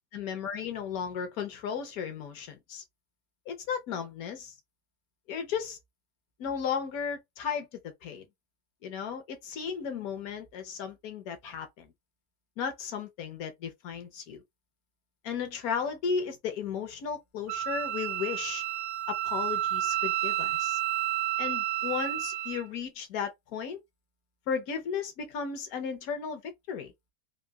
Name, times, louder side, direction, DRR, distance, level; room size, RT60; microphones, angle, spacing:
voice 1, 0.1-2.8 3.5-4.5 5.3-5.8 6.4-8.2 8.8-11.9 12.6-14.4 15.2-18.6 19.1-20.8 21.4-23.8 24.5-26.9, left 7 dB, 65° left, 1.0 m, -35 dB
Wind instrument woodwind instrument, 17.5-22.6, right 13 dB, 75° right, 1.1 m, -30 dB
3.6 x 2.3 x 2.2 m
omnidirectional pair, 1.8 m